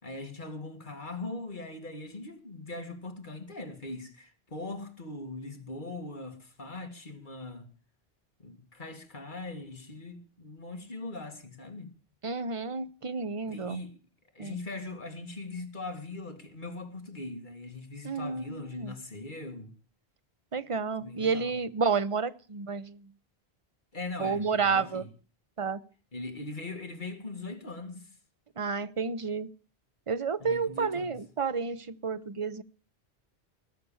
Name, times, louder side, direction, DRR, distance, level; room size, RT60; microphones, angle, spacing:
voice 1, 0.0-7.7 8.4-11.9 13.4-14.0 14.3-19.7 21.0-21.5 23.9-25.1 26.1-28.1 30.4-31.2, left 2 dB, 50° left, 2.3 m, -40 dB
voice 2, 12.2-13.8 14.4-14.6 18.0-18.9 20.5-23.1 24.2-25.0 25.6-25.8 28.6-29.5 30.1-32.6, right 5 dB, 35° right, 0.7 m, -30 dB
19.5 x 6.9 x 7.1 m
omnidirectional pair, 1.1 m